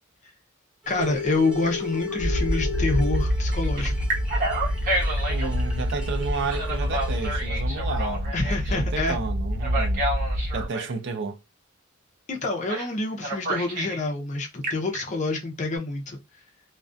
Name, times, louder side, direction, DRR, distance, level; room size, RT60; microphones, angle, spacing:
sound 1, 0.8-7.5, right 1 dB, 5° right, 0.7 m, -42 dB
voice 1, 0.9-3.9 8.3-9.2 12.3-16.2, left 2 dB, 35° left, 0.5 m, -27 dB
Telephone, 1.0-3.2 3.8-5.5 6.5-8.8 9.6-10.9 12.7-12.9 13.2-14.0 14.4-15.0, equal, 40° right, 1.0 m, -30 dB
sound 2, 2.2-10.7, equal, 50° left, 0.9 m, -27 dB
voice 2, 5.3-10.1 10.5-11.4, right 4 dB, 55° right, 0.4 m, -32 dB
2.3 x 2.2 x 2.4 m
head